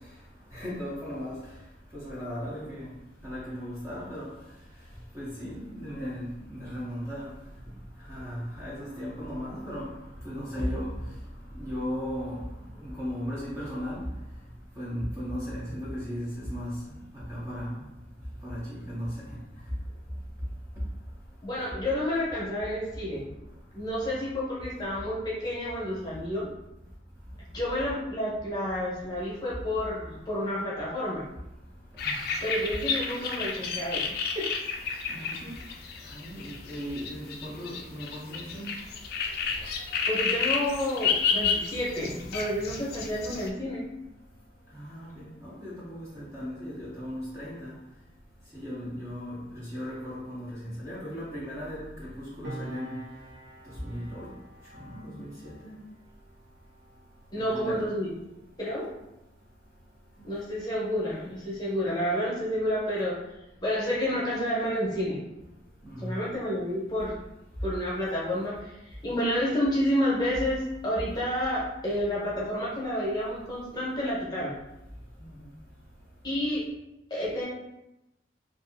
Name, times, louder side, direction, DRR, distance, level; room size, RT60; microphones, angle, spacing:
voice 1, 0.5-1.4 1.9-2.9 3.2-4.3 5.1-7.3 8.1-9.9 10.2-11.0 11.5-12.4 12.8-14.1 14.8-16.8 17.3-17.7 18.4-19.1 32.0-32.1 35.1-35.5 36.1-38.7 44.7-47.7 48.5-52.9 53.8-54.3 54.8-55.8 57.5-57.9 65.8-66.1 75.2-75.3, equal, 15° right, -8 dB, 0.5 m, -36 dB
voice 2, 21.4-23.2 23.7-26.5 27.5-31.2 32.4-34.5 39.7-39.8 40.1-43.8 57.3-58.1 58.6-58.9 60.2-63.2 63.6-65.2 66.0-67.2 67.6-74.5 76.2-76.6 77.1-77.4, equal, 20° left, -7 dB, 0.8 m, -30 dB
sound 1, 32.0-43.5, left 5 dB, 55° left, 0.3 m, -31 dB
Piano, 52.4-59.5 59.8-60.0, right 1 dB, 75° right, 0.5 m, -48 dB
2.6 x 2.4 x 2.5 m, 0.92 s
head